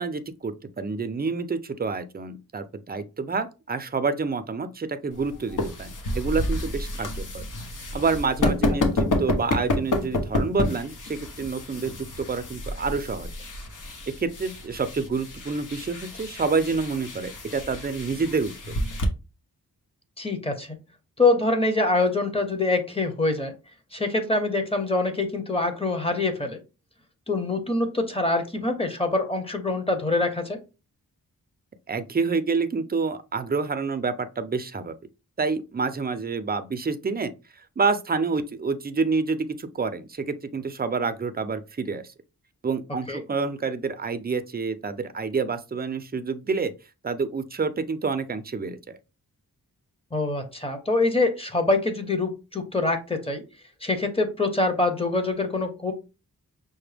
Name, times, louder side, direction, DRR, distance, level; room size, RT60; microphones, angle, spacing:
voice 1, 0.0-7.4 7.9-13.3 14.2-18.7 31.9-35.0 35.4-37.3 37.8-42.1 42.6-46.7 47.0-49.0, right 4 dB, 25° right, 0.5 m, -28 dB
sound 1, 5.1-19.1, left 1 dB, 60° left, 0.9 m, -30 dB
voice 2, 20.2-20.8 21.2-23.5 23.9-26.6 27.3-30.6 43.1-43.2 50.1-53.4 53.8-55.9, left 2 dB, 15° left, 0.9 m, -25 dB
5.8 x 2.1 x 3.3 m
wide cardioid pair, 95°, 35 cm